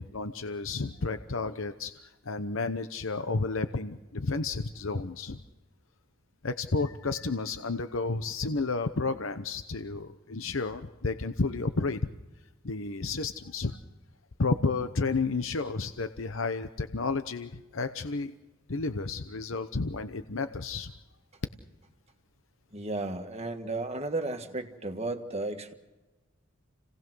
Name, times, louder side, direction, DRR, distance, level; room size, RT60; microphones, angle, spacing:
voice 1, 0.0-5.4 6.4-12.0 12.6-13.8 14.4-18.3 18.7-20.9, left 3 dB, 70° left, 9 dB, 0.9 m, -31 dB
voice 2, 22.7-25.7, right 2 dB, 30° right, 5 dB, 1.7 m, -34 dB
29.5 x 18.0 x 6.2 m, 1.1 s
head